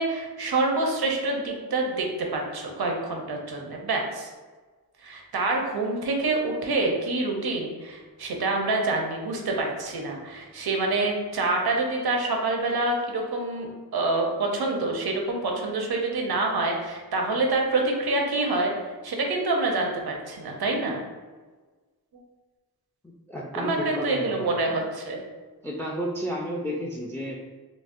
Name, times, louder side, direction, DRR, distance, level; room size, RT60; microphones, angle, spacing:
voice 1, 0.0-4.3 5.0-18.7 19.0-21.0 23.6-25.2, right 2 dB, 80° right, 1 dB, 0.6 m, -27 dB
voice 2, 23.0-24.5 25.6-27.4, equal, 5° left, -1 dB, 0.3 m, -32 dB
4.0 x 2.1 x 2.5 m, 1.3 s
wide cardioid pair, 80°, 37 cm